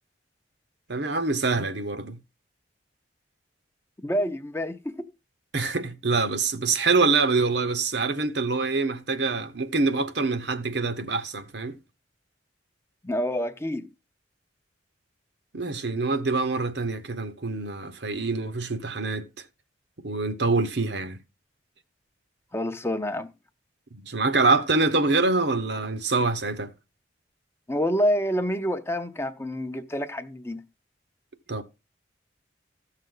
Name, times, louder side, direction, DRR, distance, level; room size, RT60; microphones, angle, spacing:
voice 1, 0.9-2.2 5.5-11.8 15.5-19.3 20.0-21.2 24.0-26.7 31.5-31.6, right 3 dB, 65° right, 0.9 m, -25 dB
voice 2, 4.0-5.1 13.0-13.9 22.5-23.3 27.7-30.6, equal, 15° left, 0.6 m, -27 dB
15.0 x 6.6 x 3.8 m
head